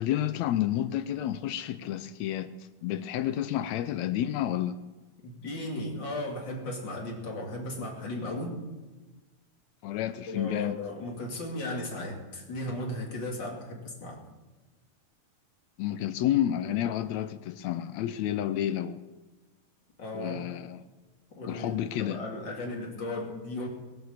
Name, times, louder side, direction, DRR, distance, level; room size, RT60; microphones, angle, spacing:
voice 1, 0.0-2.5 2.8-4.8 9.8-10.8 15.8-19.0 20.1-20.8 21.5-22.2, left 12 dB, 75° left, 1.8 m, -30 dB
voice 2, 5.2-8.6 10.3-14.2 20.0-20.4 21.4-23.7, left 1 dB, 40° left, 3.1 m, -36 dB
20.5 x 7.6 x 7.1 m
omnidirectional pair, 3.3 m